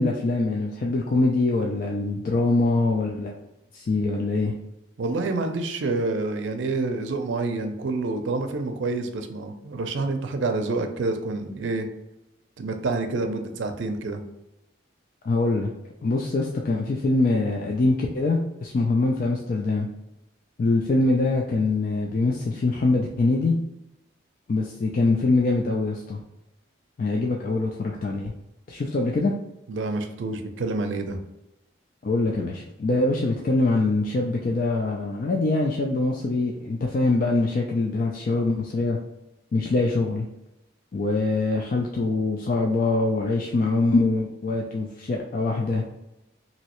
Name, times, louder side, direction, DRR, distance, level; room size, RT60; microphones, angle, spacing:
voice 1, 0.0-3.3 3.7-4.5 15.2-15.7 16.0-19.9 20.6-23.5 24.5-26.2 27.0-28.3 28.7-29.3 32.0-39.0 39.5-40.3 40.9-45.8, left 2 dB, 45° left, 0 dB, 0.3 m, -23 dB
voice 2, 5.0-11.9 12.6-14.2 29.7-31.2, right 3 dB, 80° right, 6 dB, 0.5 m, -28 dB
3.1 x 2.7 x 2.9 m, 0.92 s
head